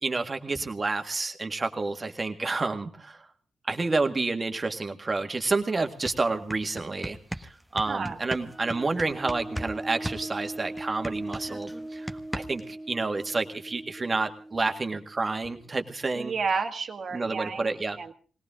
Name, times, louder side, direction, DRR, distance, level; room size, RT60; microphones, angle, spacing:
voice 1, 0.0-3.3 3.7-16.3 17.1-18.0, right 3 dB, 40° right, 6 dB, 1.9 m, -29 dB
sound 1, 5.5-5.6 5.9-9.7 10.0-12.7, equal, ahead, 1.4 m, -37 dB
voice 2, 7.9-8.2 16.1-18.1, right 5 dB, 60° right, 6 dB, 1.8 m, -31 dB
sound 2, 8.4-15.8, right 1 dB, 15° right, 0.9 m, -41 dB
21.0 x 18.0 x 3.8 m, 0.40 s
supercardioid pair, 45°, 0 cm